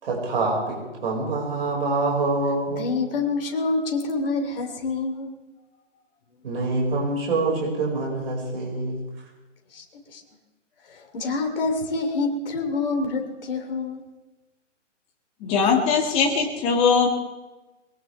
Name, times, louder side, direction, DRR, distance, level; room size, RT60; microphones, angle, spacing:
voice 1, 0.0-2.9 6.4-9.0, right 3 dB, 45° right, -1 dB, 5.3 m, -25 dB
voice 2, 2.7-5.3 9.7-9.8 10.1-10.2 10.9-14.0, left 3 dB, 45° left, 3 dB, 3.1 m, -27 dB
voice 3, 15.4-17.1, left 5 dB, 15° left, 1 dB, 1.9 m, -20 dB
22.0 x 19.0 x 3.4 m, 1.1 s
hypercardioid pair, 155°, 38 cm